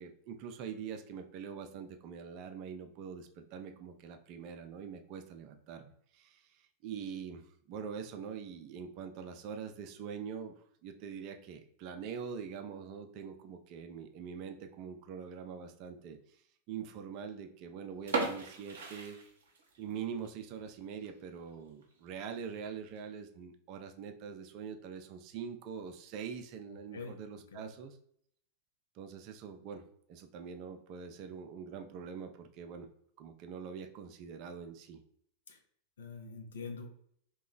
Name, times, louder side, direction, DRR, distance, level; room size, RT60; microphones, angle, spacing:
voice 1, 0.0-10.5 10.8-16.4 16.7-19.2 19.8-28.0 28.9-29.8 30.1-32.9 33.2-35.0, right 7 dB, 40° right, 6 dB, 0.5 m, -44 dB
sound 1, 18.0-19.9 20.2-20.3 20.9-21.1 21.5-21.6 21.8-21.9 22.7-23.0, right 4 dB, 60° right, 0.9 m, -37 dB
voice 2, 26.7-27.1 27.5-27.7 35.5-35.6 36.0-36.9, left 4 dB, 65° left, 3 dB, 0.6 m, -45 dB
2.9 x 2.2 x 3.8 m, 0.64 s
figure-of-eight pair, 90°, 0 cm